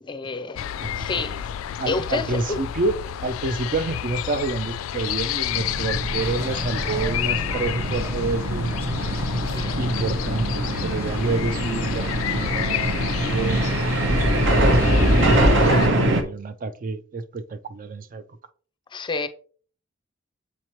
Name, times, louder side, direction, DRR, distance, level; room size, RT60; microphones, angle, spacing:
voice 1, 0.0-1.4 1.9-2.6 9.4-9.8 18.9-19.3, left 3 dB, 25° left, 0.5 m, -29 dB
sound 1, 0.6-15.9, left 10 dB, 85° left, 0.3 m, -30 dB
voice 2, 1.8-3.0 3.2-8.7 9.8-14.2 15.1-15.9 16.2-18.2, right 3 dB, 45° right, 0.4 m, -29 dB
sound 2, 5.5-16.2, right 1 dB, 65° right, 1.0 m, -24 dB
sound 3, 6.2-15.7, left 1 dB, 15° right, 1.1 m, -29 dB
7.3 x 3.0 x 4.3 m
head